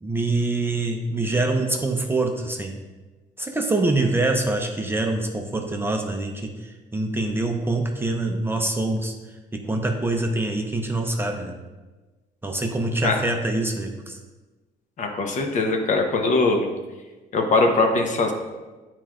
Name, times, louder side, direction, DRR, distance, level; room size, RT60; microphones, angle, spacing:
voice 1, 0.0-2.8 3.4-9.1 9.5-11.6 12.4-14.2, right 2 dB, 15° right, 2 dB, 0.6 m, -25 dB
voice 2, 15.0-16.7 17.3-18.3, left 3 dB, 45° left, 3 dB, 0.9 m, -21 dB
9.1 x 4.5 x 2.5 m, 1.2 s
cardioid pair, 110°, 17 cm